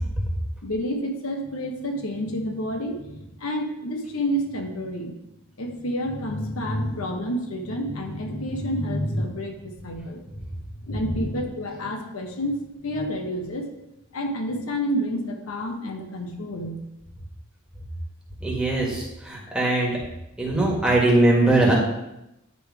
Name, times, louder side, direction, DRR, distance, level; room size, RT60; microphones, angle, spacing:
voice 1, 0.6-5.1 5.6-10.2 10.8-13.7 14.1-16.8, equal, 80° left, 3 dB, 1.0 m, -29 dB
voice 2, 18.4-20.0 20.4-21.7, right 2 dB, 5° right, -4 dB, 1.6 m, -21 dB
9.5 x 3.3 x 4.7 m, 0.89 s
head